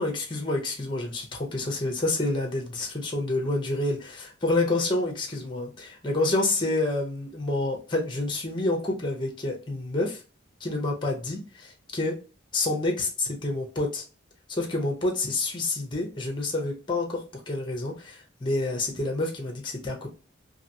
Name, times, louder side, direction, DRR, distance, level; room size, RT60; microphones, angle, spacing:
voice 1, 0.0-10.2 10.6-12.2 12.5-14.0 14.5-20.1, left 2 dB, 25° left, 1 dB, 0.7 m, -28 dB
2.9 x 2.5 x 2.7 m, 0.33 s
head